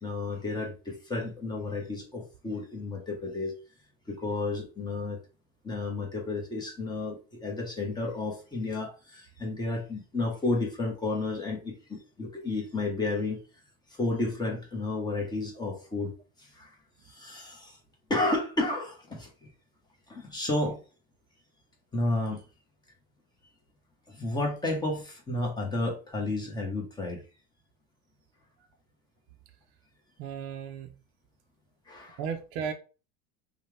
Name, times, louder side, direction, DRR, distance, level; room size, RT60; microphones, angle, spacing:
voice 1, 0.0-3.5 4.1-5.2 5.6-13.4 13.9-16.1 16.4-16.7 17.0-17.8 18.1-19.5 20.1-20.8 21.9-22.4 24.1-27.2 31.9-32.2, left 2 dB, 15° left, 1.2 m, -32 dB
voice 2, 30.2-31.0 32.2-32.7, right 7 dB, 55° right, 0.7 m, -35 dB
5.5 x 2.4 x 3.4 m
cardioid pair, 150°, 30 cm